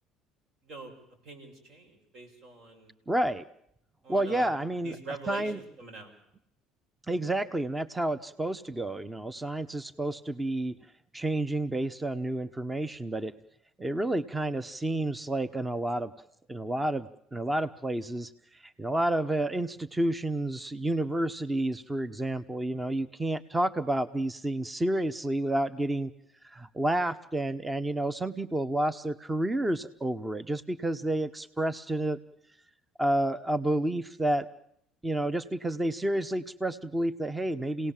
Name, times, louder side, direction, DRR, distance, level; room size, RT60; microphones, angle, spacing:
voice 1, 1.2-2.9 4.0-4.5 4.8-6.1, right 4 dB, 60° right, 5 dB, 7.0 m, -44 dB
voice 2, 3.1-3.4 4.1-5.0 5.3-5.6 7.1-10.8 11.1-13.3 13.8-16.1 16.5-26.1 26.4-32.2 33.0-34.5 35.0-37.9, right 1 dB, 15° right, 15 dB, 0.9 m, -30 dB
29.5 x 18.0 x 7.5 m, 0.76 s
supercardioid pair, 85°, 0 cm